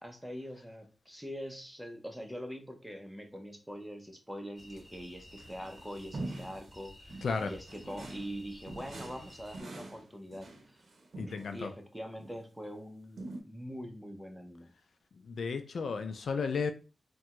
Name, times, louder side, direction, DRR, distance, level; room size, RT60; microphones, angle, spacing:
voice 1, 0.0-10.8 11.3-13.2 13.5-14.7, equal, 5° right, 0.7 m, -43 dB
sound 1, 4.5-9.6, left 1 dB, 25° left, 1.3 m, -54 dB
sound 2, 5.3-6.7 7.1-8.4 8.7-11.6 12.2-12.4 13.2-13.4, right 2 dB, 65° right, 0.7 m, -44 dB
voice 2, 7.2-7.5 11.2-11.7 15.2-16.7, left 5 dB, 80° left, 0.4 m, -33 dB
3.4 x 2.2 x 2.9 m
cardioid pair, 65°, 0 cm